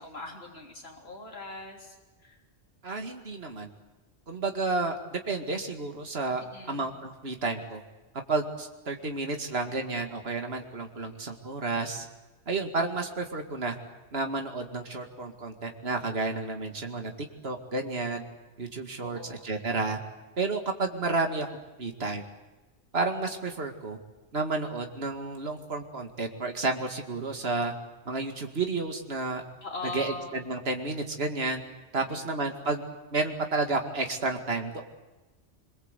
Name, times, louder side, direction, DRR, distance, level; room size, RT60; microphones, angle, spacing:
voice 1, 0.0-2.0 2.2-2.4 6.4-6.9 19.0-19.5 29.6-30.4 32.1-32.4, left 3 dB, 60° left, 1 dB, 3.8 m, -41 dB
voice 2, 2.8-3.7 4.3-7.8 8.3-12.1 12.5-13.8 14.1-17.1 17.4-18.2 18.6-20.0 20.4-22.2 22.9-24.0 24.3-27.7 28.1-29.4 29.9-31.6 31.9-32.8 33.1-34.8, right 3 dB, 60° right, 4 dB, 2.5 m, -31 dB
26.0 x 23.0 x 8.3 m, 1.1 s
omnidirectional pair, 1.1 m